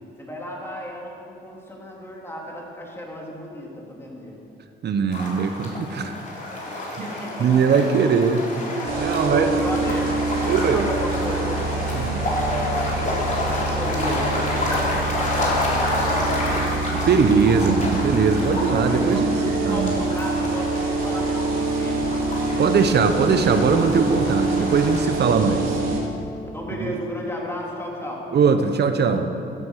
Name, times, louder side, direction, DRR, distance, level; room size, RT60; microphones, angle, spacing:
voice 1, 0.2-4.4 6.9-8.0 9.0-11.6 12.2-16.8 18.8-22.1 26.5-28.3, equal, 10° left, -3 dB, 3.8 m, -33 dB
voice 2, 4.8-6.2 7.0-7.1 7.4-8.4 8.9-9.5 10.5-10.9 11.9-12.2 16.9-19.3 19.6-19.9 22.6-25.8 26.7-26.9 28.3-29.3, right 5 dB, 55° right, 8 dB, 1.1 m, -20 dB
sound 1, 5.1-25.0, left 2 dB, 40° left, 4.3 m, -29 dB
sound 2, 8.8-26.0, right 3 dB, 90° right, 3.4 m, -26 dB
16.0 x 11.0 x 6.6 m, 2.7 s
cardioid pair, 90°, 20 cm